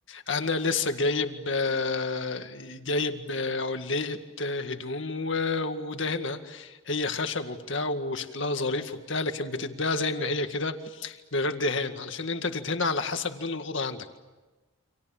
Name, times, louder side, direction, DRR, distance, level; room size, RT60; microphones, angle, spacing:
voice 1, 0.1-14.2, left 3 dB, 65° left, 7 dB, 2.0 m, -29 dB
30.0 x 26.5 x 7.2 m, 1.2 s
head